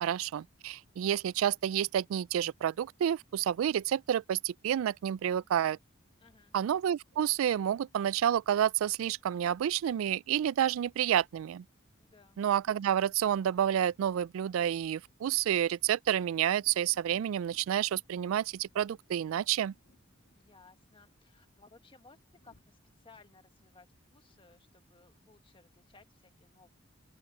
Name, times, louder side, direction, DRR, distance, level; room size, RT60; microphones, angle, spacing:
voice 1, 0.0-5.8 6.5-11.6 12.4-19.7, right 10 dB, 90° right, 0.3 m, -29 dB
voice 2, 6.2-6.5 12.0-12.4 20.3-22.2 22.4-26.7, left 3 dB, 25° left, 1.4 m, -60 dB
Thunder, 16.5-22.6, left 1 dB, 75° left, 2.3 m, -69 dB
open air
head